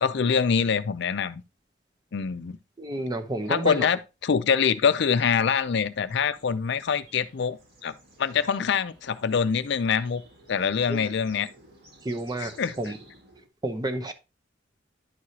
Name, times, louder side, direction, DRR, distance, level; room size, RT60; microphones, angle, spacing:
voice 1, 0.0-1.4 2.1-2.6 3.5-7.9 8.2-10.2 10.5-11.5 12.4-12.7, left 6 dB, 65° left, 0.5 m, -25 dB
voice 2, 2.8-3.9 10.9-11.1 12.0-13.0 13.6-14.1, right 1 dB, 20° right, 0.8 m, -31 dB
sound 1, 4.9-13.5, right 1 dB, 55° right, 2.3 m, -54 dB
11.0 x 4.8 x 2.8 m
head